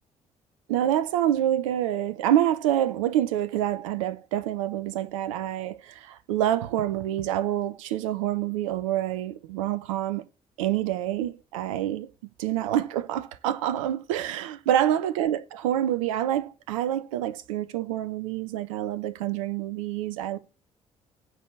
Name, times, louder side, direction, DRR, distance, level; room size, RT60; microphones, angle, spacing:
voice 1, 0.7-10.2 10.6-12.1 12.4-20.4, right 12 dB, 70° right, 0.6 m, -27 dB
10.0 x 4.7 x 6.9 m
figure-of-eight pair, 45°, 17 cm